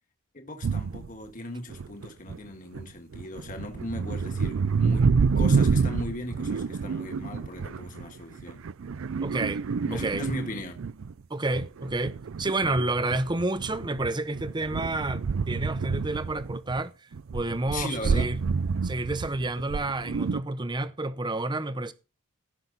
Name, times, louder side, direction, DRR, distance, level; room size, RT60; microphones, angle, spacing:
voice 1, 0.3-8.6 9.9-10.8 17.7-18.3, left 1 dB, 35° left, 1.7 m, -37 dB
sound 1, 0.6-1.1 1.7-2.4 2.7-11.1 11.5-16.8 17.1-20.4, right 5 dB, 60° right, 0.4 m, -28 dB
voice 2, 9.2-9.6 9.9-10.3 11.3-16.9 17.3-18.4 18.8-21.9, right 2 dB, 20° right, 0.8 m, -30 dB
17.0 x 6.0 x 4.0 m
head